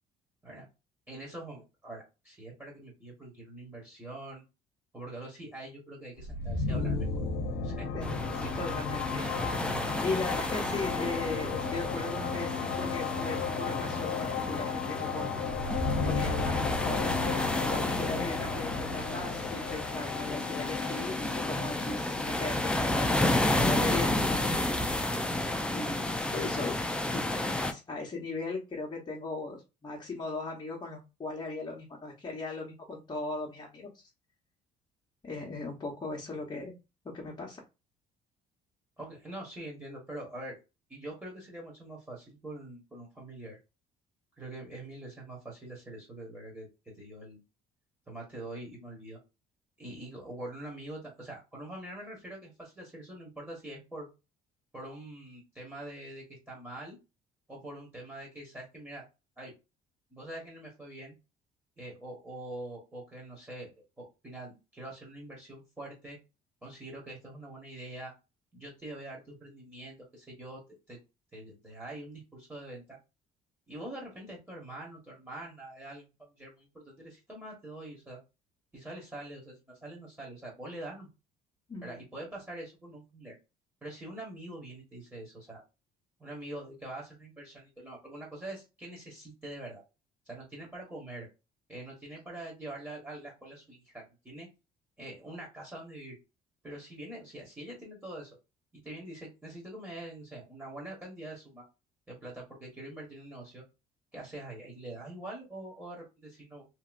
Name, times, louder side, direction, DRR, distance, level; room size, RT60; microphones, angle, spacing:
voice 1, 1.1-4.4 4.9-7.3 7.6-7.9 8.3-8.6 9.1-9.3 39.0-40.6 40.9-43.6 44.4-47.4 48.1-49.2 49.8-54.1 54.7-57.0 57.5-59.0 59.4-59.5 60.1-61.1 61.8-66.2 66.6-68.1 68.5-70.6 70.9-71.0 71.3-73.0 73.7-78.2 78.7-81.1 81.8-83.4 83.8-85.6 86.2-89.8 90.2-91.3 91.7-94.5 95.0-96.2 96.6-98.4 98.7-101.6 102.1-103.6 104.1-106.6, right 1 dB, 10° right, -3 dB, 1.3 m, -44 dB
sound 1, 6.2-23.9, left 5 dB, 75° left, 0.6 m, -34 dB
sound 2, 8.0-27.7, left 1 dB, 5° left, 0.4 m, -32 dB
voice 2, 8.5-9.0 10.0-15.4 16.0-24.7 25.7-26.8 27.1-34.1 35.2-36.8 37.0-37.6 81.7-82.0, left 3 dB, 25° left, -2 dB, 0.9 m, -38 dB
2.9 x 2.7 x 2.5 m, 0.27 s
cardioid pair, 110°, 17 cm